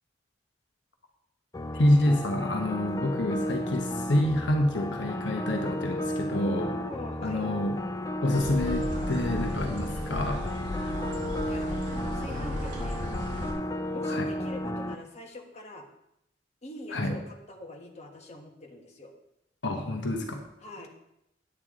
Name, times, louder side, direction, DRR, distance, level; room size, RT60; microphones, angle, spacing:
sound 1, 1.5-14.9, left 1 dB, 20° left, 0.5 m, -33 dB
voice 1, 1.7-6.7 7.2-7.8 8.2-10.5 14.1-14.3 16.9-17.2 19.6-20.4, left 1 dB, 70° left, 3 dB, 1.1 m, -27 dB
voice 2, 6.4-7.5 11.4-11.7 12.1-13.0 13.9-15.9 16.6-19.1 20.6-20.9, left 1 dB, 35° left, 1 dB, 1.4 m, -43 dB
sound 2, 8.3-13.5, equal, 45° right, 2.8 m, -35 dB
9.7 x 8.7 x 3.7 m, 0.82 s
head